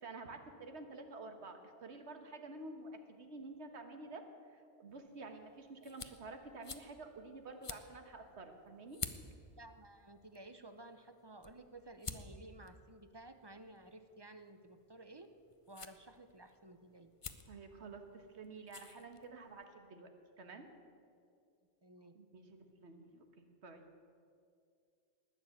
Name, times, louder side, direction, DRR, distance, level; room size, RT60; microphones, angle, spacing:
voice 1, 0.0-9.0 17.5-20.1 20.4-20.7 22.1-23.8, right 3 dB, 75° right, 6 dB, 1.6 m, -50 dB
sound 1, 4.9-19.6, left 5 dB, 35° left, 0.7 m, -52 dB
voice 2, 9.5-15.3 15.7-17.1 21.8-22.1, right 2 dB, 25° right, 9 dB, 0.6 m, -55 dB
19.5 x 6.7 x 9.1 m, 2.4 s
omnidirectional pair, 1.2 m